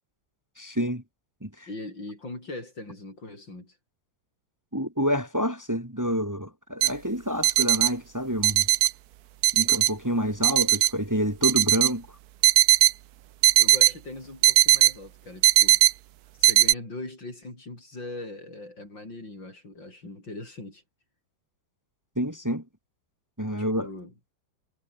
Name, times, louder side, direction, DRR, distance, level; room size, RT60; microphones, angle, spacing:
voice 1, 0.6-1.0 1.4-1.7 4.7-8.7 9.5-12.1 22.2-22.6 23.4-23.9, equal, 10° right, 2.9 m, -28 dB
voice 2, 1.7-3.8 13.6-15.8 16.4-20.8 23.8-24.1, left 2 dB, 75° left, 8.9 m, -40 dB
sound 1, 6.8-6.9 7.4-7.9 8.4-8.9 9.4-9.9 10.4-10.9 11.4-11.9 12.4-12.9 13.4-13.9 14.4-14.9 15.4-15.9 16.4-16.7, right 14 dB, 70° right, 1.0 m, -18 dB
omnidirectional pair, 2.1 m